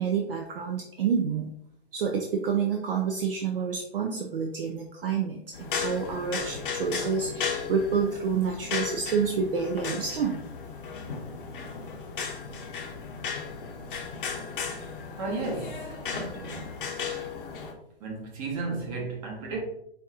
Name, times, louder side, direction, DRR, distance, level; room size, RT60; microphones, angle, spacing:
voice 1, 0.0-1.5 1.9-10.5, right 6 dB, 60° right, 0.6 m, -28 dB
sound 1, 5.5-17.7, left 6 dB, 55° left, 0.8 m, -35 dB
voice 2, 15.2-16.8 18.0-19.6, right 3 dB, 35° right, 1.2 m, -34 dB
5.1 x 2.8 x 2.4 m
figure-of-eight pair, 125°, 32 cm